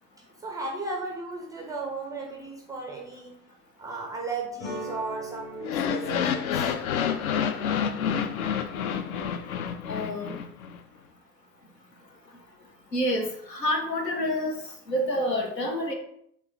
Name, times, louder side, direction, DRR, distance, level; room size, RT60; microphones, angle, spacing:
voice 1, 0.4-3.4 3.8-6.7, right 3 dB, 10° right, 1 dB, 0.3 m, -35 dB
sound 1, 4.6-9.5, right 1 dB, 40° left, 1.0 m, -42 dB
sound 2, 5.6-10.8, left 8 dB, 60° left, 0.5 m, -28 dB
voice 2, 9.9-10.4 12.9-15.9, equal, 85° left, 2 dB, 0.9 m, -28 dB
3.7 x 3.0 x 4.0 m, 0.70 s
figure-of-eight pair, 75°, 48 cm